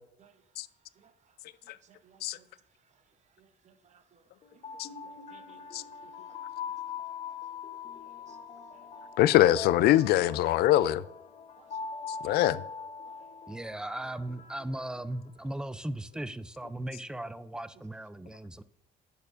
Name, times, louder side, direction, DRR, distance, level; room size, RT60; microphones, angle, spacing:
voice 1, 1.8-2.5 3.4-4.2 4.5-5.8 6.3-6.4 6.6-6.9 8.3-8.4 8.7-9.1 11.6-11.8 12.2-12.5 13.0-13.3, right 7 dB, 45° right, 0.8 m, -63 dB
sound 1, 4.4-15.5, left 6 dB, 40° left, 0.9 m, -42 dB
voice 2, 9.2-11.0 12.2-12.6, left 14 dB, 70° left, 0.4 m, -23 dB
voice 3, 13.5-18.6, right 1 dB, 5° right, 0.4 m, -37 dB
10.5 x 6.7 x 2.5 m
cardioid pair, 110°, 17 cm